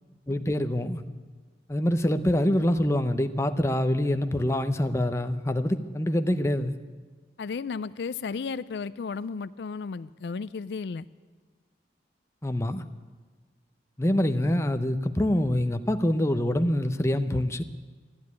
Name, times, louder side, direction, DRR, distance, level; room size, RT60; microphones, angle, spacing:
voice 1, 0.3-1.0 1.7-6.8 12.4-12.8 14.0-17.6, left 1 dB, 15° left, 9 dB, 0.6 m, -25 dB
voice 2, 7.4-11.1, left 5 dB, 75° left, 15 dB, 0.4 m, -34 dB
14.5 x 10.5 x 9.6 m, 1.4 s
head